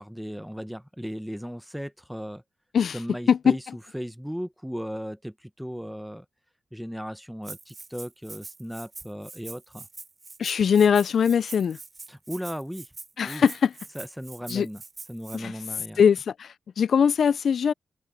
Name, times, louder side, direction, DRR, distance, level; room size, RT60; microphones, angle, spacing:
voice 1, 0.0-2.4 2.9-3.6 3.9-6.2 6.7-9.9 12.1-12.9 13.2-13.4 13.9-14.8 15.1-16.0, equal, ahead, 0.8 m, -36 dB
Rattle (instrument), 7.4-15.4, right 3 dB, 35° right, 4.4 m, -44 dB
voice 2, 10.4-11.8 13.2-13.7 14.5-14.7 15.3-15.5 16.0-17.7, left 7 dB, 70° left, 0.3 m, -21 dB
open air
cardioid pair, 60°, 0 cm